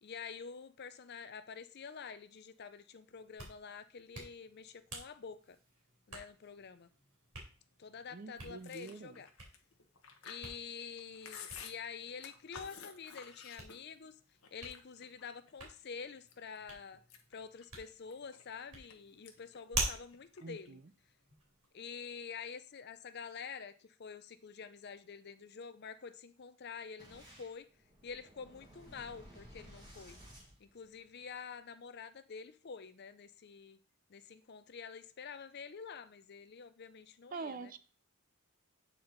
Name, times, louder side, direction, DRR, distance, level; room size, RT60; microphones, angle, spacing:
voice 1, 0.0-5.6 6.1-6.9 7.8-9.3 10.2-14.2 14.5-17.0 17.3-20.8 21.7-27.7 28.0-30.2 30.6-33.8 34.1-37.7, left 6 dB, 50° left, 0.5 m, -48 dB
Hands, 3.1-21.7, right 2 dB, 90° right, 3.1 m, -47 dB
voice 2, 8.1-9.2 20.4-20.9 37.3-37.8, right 4 dB, 40° right, 0.5 m, -45 dB
Chewing mastication, 8.6-14.1 14.4-15.5 16.0-16.6 16.9-18.9 19.2-19.6 19.8-20.7, left 6 dB, 70° left, 1.0 m, -52 dB
Boom, 27.0-31.4, equal, 20° right, 1.8 m, -56 dB
8.5 x 4.4 x 3.9 m
head